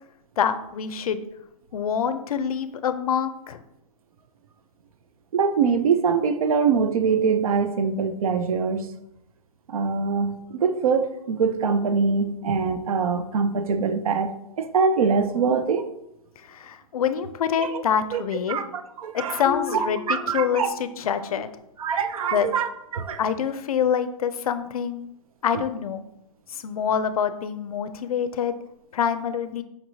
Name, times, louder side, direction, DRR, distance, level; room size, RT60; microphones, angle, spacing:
voice 1, 0.4-1.2 1.7-3.6 16.4-18.6 19.1-21.5 22.3-22.5 23.2-25.0 25.4-26.1 26.5-28.5 28.9-29.6, left 8 dB, 85° left, 12 dB, 0.4 m, -26 dB
voice 2, 5.3-8.9 9.7-15.8 17.6-17.8 18.1-18.2 18.5-19.4 19.7-20.7 21.8-23.3, right 5 dB, 75° right, 10 dB, 0.5 m, -23 dB
sound 1, 19.4-21.1, left 7 dB, 10° left, 0.3 m, -37 dB
5.2 x 2.9 x 2.7 m, 0.83 s
hypercardioid pair, 155°, 18 cm